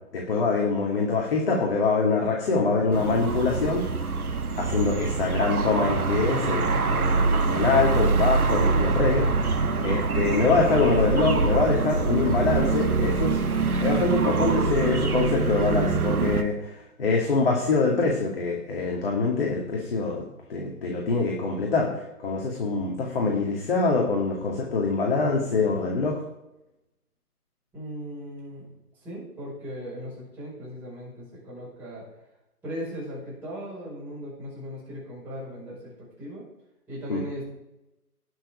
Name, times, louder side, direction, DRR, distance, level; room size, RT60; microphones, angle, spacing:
voice 1, 0.1-3.9 4.6-9.3 9.8-13.4 13.8-26.2 37.1-37.2, left 4 dB, 35° left, -1 dB, 2.6 m, -24 dB
sound 1, 2.9-16.4, right 4 dB, 65° right, 1.5 m, -24 dB
voice 2, 27.7-28.7 29.0-32.0 32.6-35.9 36.2-36.4 36.9-37.5, equal, 5° right, -10 dB, 5.6 m, -37 dB
20.0 x 6.9 x 5.2 m, 0.92 s
figure-of-eight pair, 145°, 47 cm